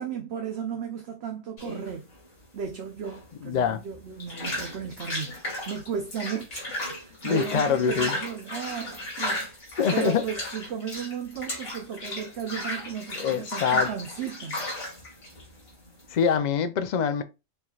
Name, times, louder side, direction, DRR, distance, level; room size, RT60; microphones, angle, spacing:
voice 1, 0.0-2.1 2.5-14.7, right 7 dB, 60° right, 0.9 m, -35 dB
sound 1, 1.6-16.3, left 1 dB, 90° left, 2.9 m, -35 dB
voice 2, 3.4-3.8 7.2-8.2 9.8-10.2 13.2-13.9 16.1-17.2, left 7 dB, 55° left, 0.5 m, -24 dB
6.4 x 3.1 x 2.3 m
omnidirectional pair, 1.4 m